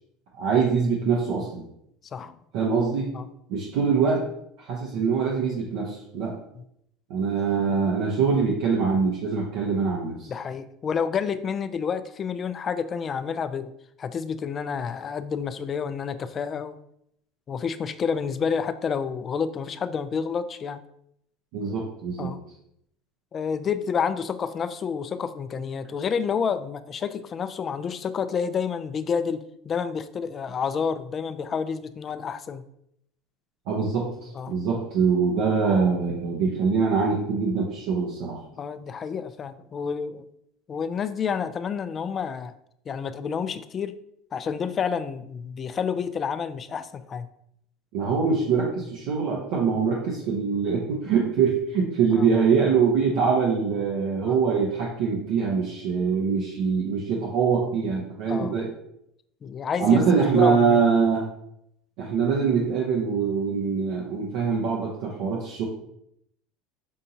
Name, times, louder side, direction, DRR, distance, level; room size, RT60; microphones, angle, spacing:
voice 1, 0.4-1.7 2.5-3.1 3.5-4.2 4.6-6.4 7.1-10.3 21.5-22.3 33.7-38.4 47.9-58.7 59.8-61.3 62.0-65.7, right 5 dB, 70° right, -2 dB, 0.7 m, -23 dB
voice 2, 10.3-13.7 14.0-16.8 17.5-20.8 22.2-22.4 23.3-32.6 34.3-34.6 38.5-40.3 40.7-42.5 42.9-44.0 44.3-47.3 52.2-52.3 54.2-54.4 58.3-58.5 59.4-60.0 60.3-60.8, left 6 dB, 35° left, 12 dB, 0.3 m, -29 dB
5.4 x 2.6 x 2.8 m, 0.74 s
hypercardioid pair, 90°, 0 cm